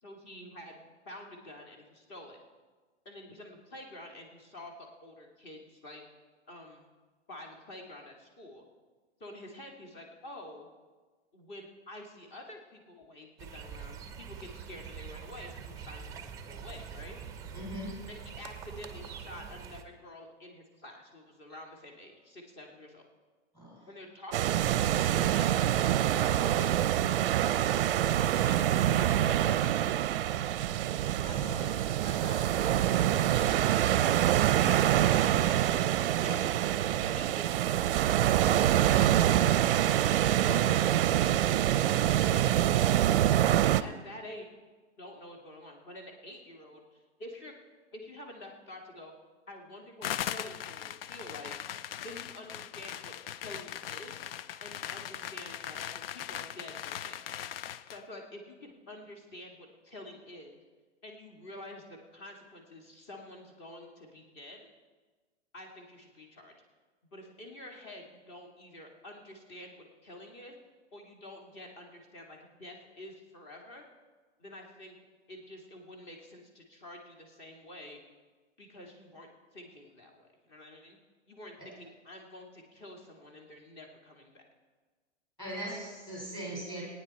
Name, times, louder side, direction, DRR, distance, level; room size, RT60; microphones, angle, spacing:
voice 1, 0.0-2.4 3.1-6.0 6.5-6.9 7.3-8.6 9.2-10.7 11.3-17.2 18.1-23.0 23.9-25.6 26.2-26.8 27.6-29.7 31.1-33.0 33.3-34.9 35.4-36.5 37.1-38.0 38.7-39.8 40.1-41.0 41.5-42.6 43.4-44.5 45.0-47.5 47.9-49.1 49.5-51.5 52.0-53.1 53.4-54.2 54.6-57.2 57.9-60.6 61.0-64.6 65.5-66.5 67.1-70.5 70.9-73.9 74.4-75.0 75.3-78.0 78.6-81.0 81.3-84.4, left 1 dB, 30° left, 2 dB, 2.3 m, -48 dB
sound 1, 13.4-19.8, right 7 dB, 10° right, 0.7 m, -44 dB
voice 2, 17.5-17.9 23.5-23.8 31.2-31.7 81.6-81.7 85.4-86.8, right 1 dB, 10° left, -3 dB, 4.5 m, -40 dB
sound 2, 24.3-43.8, right 12 dB, 50° right, 0.6 m, -26 dB
sound 3, 50.0-58.0, left 10 dB, 55° left, 0.4 m, -39 dB
18.5 x 9.5 x 4.3 m, 1.3 s
hypercardioid pair, 140°, 36 cm